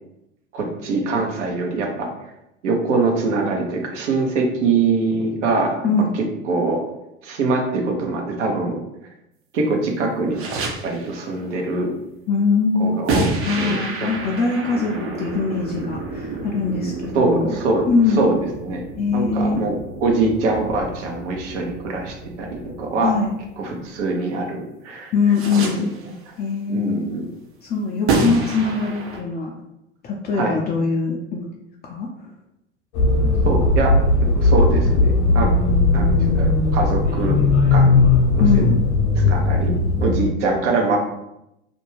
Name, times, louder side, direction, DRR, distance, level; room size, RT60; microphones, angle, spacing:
voice 1, 0.5-2.1 2.6-5.8 6.1-6.8 7.2-8.8 9.5-10.4 10.8-11.9 12.8-13.3 13.6-14.1 14.7-15.0 17.1-18.8 19.1-19.8 20.0-23.2 23.6-25.1 25.6-25.9 26.7-27.3 30.4-30.6 33.4-34.0 34.3-35.5 35.9-37.4 37.7-38.1 38.3-38.7 39.2-41.0, right 3 dB, 70° right, 1 dB, 0.8 m, -23 dB
voice 2, 5.8-6.1 12.3-13.0 13.5-17.6 17.9-18.3 19.0-19.6 23.0-23.3 25.1-25.9 26.4-27.1 27.6-29.5 30.0-31.5 31.8-32.3 38.4-38.8, left 4 dB, 30° left, -2 dB, 0.4 m, -22 dB
sound 1, 10.3-11.2 13.1-24.0 25.3-26.1 28.1-29.2, right 3 dB, 35° right, 0.6 m, -29 dB
sound 2, 32.9-40.3, left 3 dB, 65° left, 0.8 m, -17 dB
2.5 x 2.2 x 3.1 m, 0.85 s
hypercardioid pair, 75°, 36 cm